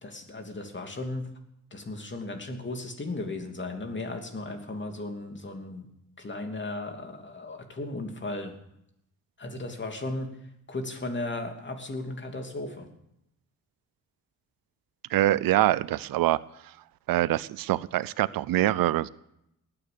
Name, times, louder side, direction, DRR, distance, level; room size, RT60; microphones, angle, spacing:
voice 1, 0.0-1.3 1.7-5.9 6.2-8.5 9.4-10.3 10.7-12.9, left 2 dB, 35° left, 4 dB, 2.8 m, -35 dB
voice 2, 15.1-16.4 17.1-19.1, right 14 dB, 90° right, 19 dB, 0.6 m, -24 dB
18.5 x 9.7 x 6.9 m, 0.80 s
cardioid pair, 85°, 34 cm